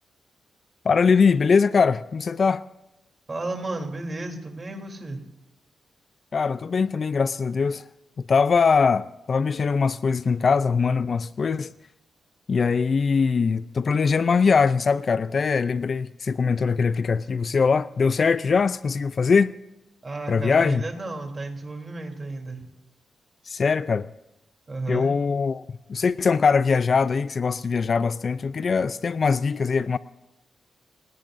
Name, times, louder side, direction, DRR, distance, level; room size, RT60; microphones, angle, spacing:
voice 1, 0.8-2.6 6.3-7.8 8.2-11.7 12.5-19.5 20.3-20.9 23.5-24.1 24.9-30.0, left 5 dB, 50° left, 0.5 m, -22 dB
voice 2, 3.3-5.2 20.0-22.6 24.7-25.1, right 2 dB, 30° right, 3.4 m, -33 dB
29.0 x 18.5 x 2.7 m
cardioid pair, 95°, 0 cm